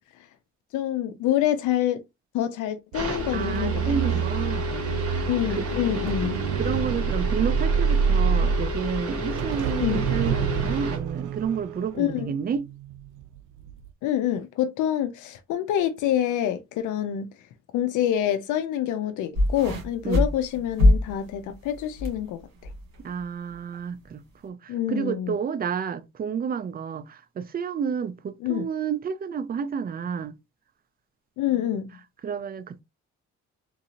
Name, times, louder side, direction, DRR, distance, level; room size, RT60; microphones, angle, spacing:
voice 1, 0.7-2.0 2.3-4.2 5.3-6.4 9.8-10.1 11.9-12.3 14.0-17.3 17.7-22.4 24.7-25.3 28.4-28.7 31.4-31.9, left 11 dB, 80° left, 0.5 m, -26 dB
sound 1, 2.9-11.0, left 1 dB, 50° right, 1.8 m, -31 dB
sound 2, 2.9-13.2 13.6-13.9, right 7 dB, 90° right, 0.5 m, -27 dB
voice 2, 3.3-5.3 5.6-5.7 6.2-12.6 20.0-20.3 23.0-30.3 32.2-32.8, right 7 dB, 30° right, 0.4 m, -30 dB
sound 3, 19.3-22.2 22.6-23.0 23.7-23.8, left 1 dB, 65° right, 1.8 m, -23 dB
3.7 x 2.7 x 2.8 m
cardioid pair, 90°, 30 cm